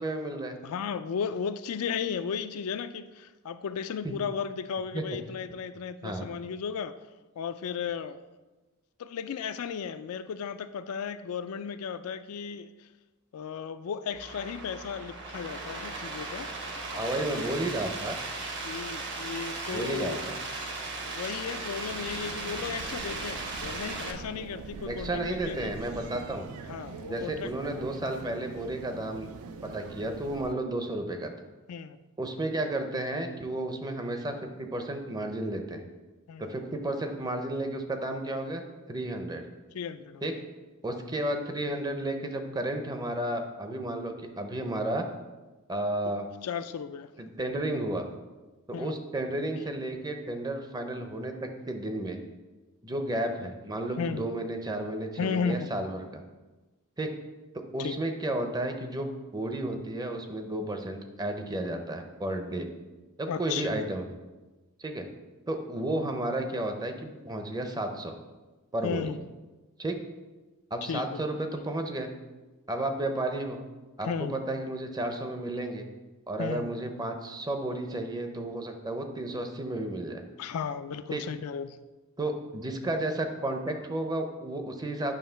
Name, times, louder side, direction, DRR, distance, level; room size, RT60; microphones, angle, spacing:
voice 1, 0.0-0.6 4.0-4.1 4.9-5.2 6.0-6.3 16.9-18.2 19.7-20.4 24.9-26.5 27.1-29.3 29.6-31.3 32.2-35.8 36.4-38.6 38.9-39.5 40.2-40.3 40.8-45.1 45.7-46.3 47.2-48.1 48.7-52.2 52.8-56.2 57.0-57.2 57.7-62.7 63.2-64.1 64.8-65.1 65.5-68.2 68.7-69.1 69.8-70.0 70.7-72.1 72.7-73.6 74.0-75.9 76.3-80.2 81.1-81.2 82.2-85.1, right 1 dB, 15° right, 5 dB, 0.6 m, -32 dB
voice 2, 0.6-6.9 7.4-8.3 9.0-12.9 13.3-16.5 16.9-17.6 18.6-20.3 21.1-25.7 26.7-27.5 31.7-32.0 36.3-36.5 39.7-40.4 46.0-46.1 46.4-47.1 48.7-48.9 54.0-54.2 55.2-55.7 57.8-58.0 63.3-63.8 68.8-69.2 70.9-71.2 74.0-74.4 76.4-76.7 80.4-81.8, left 6 dB, 75° left, 11 dB, 0.4 m, -35 dB
sound 1, 14.1-24.1, right 3 dB, 55° right, 1.1 m, -37 dB
sound 2, 21.9-30.5, right 4 dB, 70° right, 0.4 m, -43 dB
9.1 x 3.1 x 5.6 m, 1.2 s
head